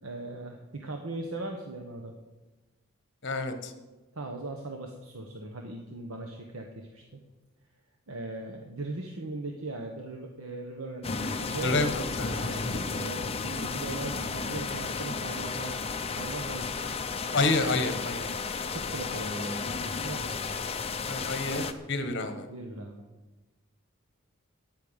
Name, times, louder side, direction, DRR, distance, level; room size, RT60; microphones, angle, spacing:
voice 1, 0.0-2.1 4.1-7.2 8.1-11.9 12.3-15.7 16.1-17.0 18.6-20.3 22.5-23.0, right 2 dB, 80° right, 2 dB, 1.2 m, -39 dB
voice 2, 3.2-3.7 11.6-12.4 17.3-18.3 21.1-22.5, left 3 dB, 55° left, 7 dB, 1.3 m, -29 dB
sound 1, 11.0-21.7, left 4 dB, 25° left, 0.6 m, -33 dB
10.5 x 8.6 x 8.1 m, 1.1 s
head